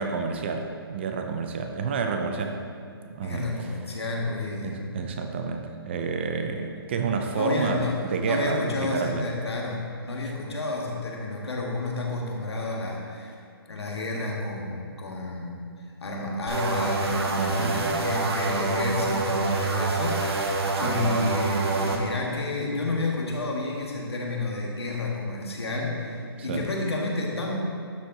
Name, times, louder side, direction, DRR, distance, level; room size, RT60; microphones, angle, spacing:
voice 1, 0.0-2.6 3.0-3.5 4.6-9.3 17.4-17.9 20.7-21.1 26.5-26.7, right 5 dB, 25° right, 5 dB, 0.4 m, -30 dB
voice 2, 3.2-4.9 7.4-13.3 13.7-27.6, left 2 dB, 85° left, -1 dB, 1.8 m, -30 dB
sound 1, 16.5-22.0, right 3 dB, 80° right, 1.2 m, -26 dB
11.5 x 4.5 x 3.9 m, 2.3 s
hypercardioid pair, 155°, 13 cm